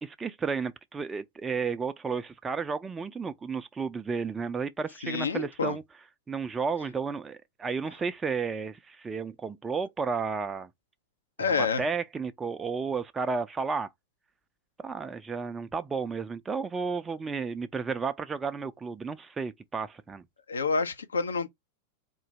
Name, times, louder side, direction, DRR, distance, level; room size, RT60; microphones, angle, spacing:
voice 1, 0.0-5.8 6.3-10.7 11.5-13.9 14.8-20.2, right 5 dB, 15° right, 0.4 m, -32 dB
voice 2, 5.0-5.8 11.4-11.8 20.5-21.5, left 4 dB, 70° left, 0.6 m, -28 dB
3.8 x 2.5 x 3.1 m
figure-of-eight pair, 90°, 0 cm